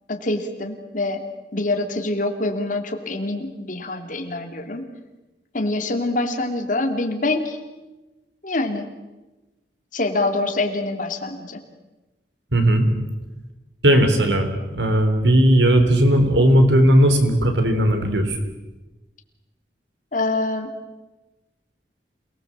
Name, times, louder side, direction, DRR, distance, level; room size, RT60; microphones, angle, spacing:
voice 1, 0.1-1.2 1.5-4.9 5.5-7.6 8.4-8.9 9.9-11.6 20.1-20.7, left 2 dB, 50° left, 4 dB, 2.8 m, -25 dB
voice 2, 12.5-12.9 13.8-18.4, right 1 dB, 80° right, 7 dB, 3.6 m, -17 dB
28.0 x 18.5 x 7.5 m, 1.1 s
head